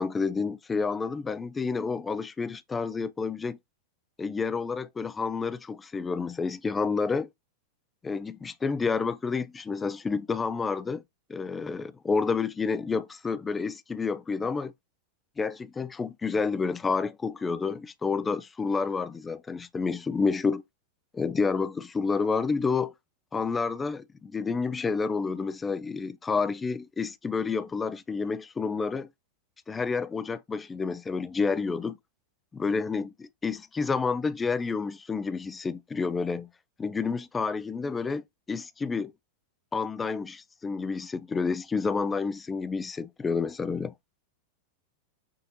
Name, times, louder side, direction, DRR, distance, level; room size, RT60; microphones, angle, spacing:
voice 1, 0.0-3.6 4.2-7.3 8.0-11.0 11.3-14.7 15.4-20.6 21.1-22.9 23.3-29.1 29.7-32.0 32.5-36.5 36.8-39.1 39.7-43.9, left 4 dB, 15° left, 0.4 m, -29 dB
6.1 x 2.5 x 2.8 m
figure-of-eight pair, 90°, 0 cm